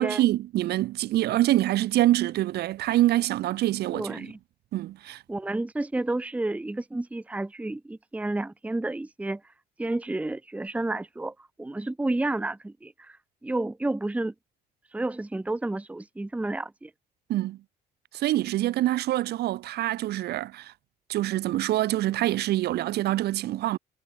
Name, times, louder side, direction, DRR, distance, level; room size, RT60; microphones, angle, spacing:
voice 1, 0.0-4.3 4.7-5.2 17.3-17.6 18.1-20.7 21.1-23.8, right 15 dB, 70° right, 2.5 m, -25 dB
voice 2, 3.9-4.4 5.3-9.4 9.8-13.2 13.4-14.3 14.9-16.9, right 2 dB, 10° right, 1.0 m, -31 dB
cardioid pair, 110°, 17 cm